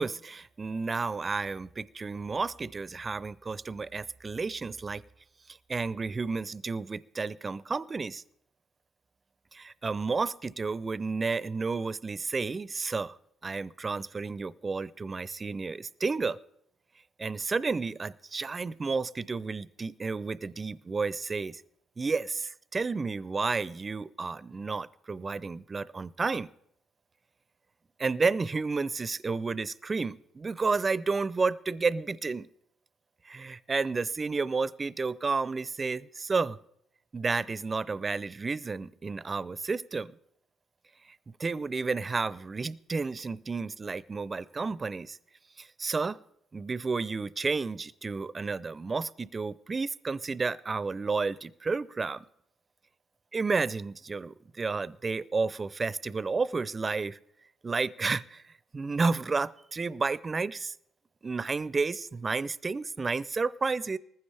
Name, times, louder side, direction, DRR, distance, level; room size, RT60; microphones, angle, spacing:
voice 1, 0.0-5.0 5.7-8.2 9.5-13.2 13.4-16.4 17.2-21.6 22.0-26.5 28.0-32.5 33.2-36.6 37.1-40.1 41.4-45.2 45.6-46.2 46.5-52.3 53.3-57.2 57.6-60.7 61.2-64.0, right 4 dB, 25° right, 0.4 m, -31 dB
19.5 x 15.0 x 3.3 m
cardioid pair, 100°, 0 cm